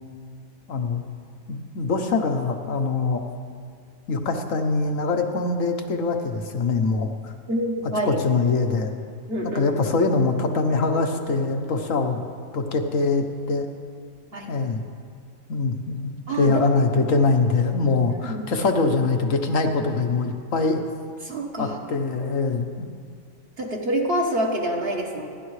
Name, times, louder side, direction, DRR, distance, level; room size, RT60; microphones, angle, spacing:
voice 1, 0.7-1.0 1.5-3.2 4.1-7.3 8.0-8.9 9.4-12.2 12.5-13.7 14.5-14.8 15.5-20.8 21.6-22.9, left 3 dB, 85° left, 5 dB, 1.5 m, -23 dB
voice 2, 7.5-8.2 9.3-9.7 14.3-14.5 16.3-16.7 18.2-18.5 21.2-21.8 23.6-25.3, right 1 dB, 50° right, -1 dB, 1.6 m, -26 dB
26.5 x 10.5 x 3.3 m, 2.2 s
omnidirectional pair, 1.3 m